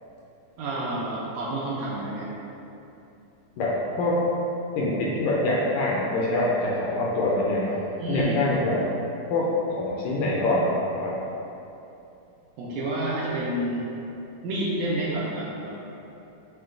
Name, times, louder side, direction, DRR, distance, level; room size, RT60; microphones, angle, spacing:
voice 1, 0.6-2.3 8.0-8.4 12.6-13.9 14.4-15.7, right 1 dB, 80° right, -6 dB, 1.9 m, -29 dB
voice 2, 3.6-4.2 4.8-7.8 8.1-8.8 9.3-11.2, left 2 dB, 80° left, -5 dB, 1.8 m, -25 dB
6.5 x 2.2 x 3.7 m, 2.9 s
omnidirectional pair, 3.8 m